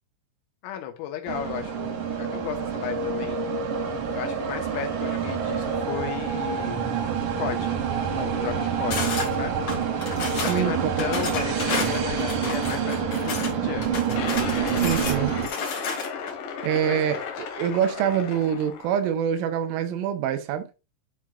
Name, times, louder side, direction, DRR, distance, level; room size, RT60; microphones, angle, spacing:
voice 1, 0.6-3.4 4.1-6.9 7.4-7.8 8.2-9.7 10.4-13.9 16.9-17.0, left 10 dB, 85° left, 3.8 m, -34 dB
sound 1, 1.3-15.5, right 6 dB, 70° right, 2.1 m, -27 dB
sound 2, 8.9-9.3 9.7-10.6 11.0-13.5 13.8-16.3, left 4 dB, 45° left, 2.7 m, -31 dB
voice 2, 10.3-10.7 14.7-15.3 16.6-17.2 17.6-20.7, right 9 dB, 85° right, 3.3 m, -25 dB
sound 3, 14.1-19.1, left 6 dB, 70° left, 2.2 m, -34 dB
11.5 x 4.8 x 2.4 m
omnidirectional pair, 5.9 m